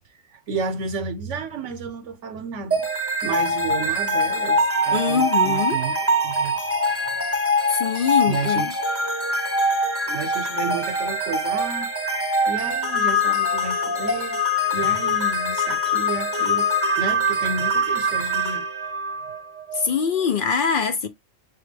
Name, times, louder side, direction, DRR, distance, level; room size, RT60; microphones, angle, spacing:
voice 1, 0.0-2.9 3.2-6.0 6.2-6.6 8.3-8.8 10.1-11.9 12.5-14.4 14.7-16.7 17.0-18.7, right 4 dB, 70° right, 1.0 m, -31 dB
sound 1, 2.7-19.9, left 1 dB, 15° right, 0.6 m, -23 dB
voice 2, 4.9-5.8 7.7-8.7 19.7-21.1, left 7 dB, 65° left, 0.5 m, -23 dB
5.7 x 2.2 x 3.1 m
omnidirectional pair, 1.4 m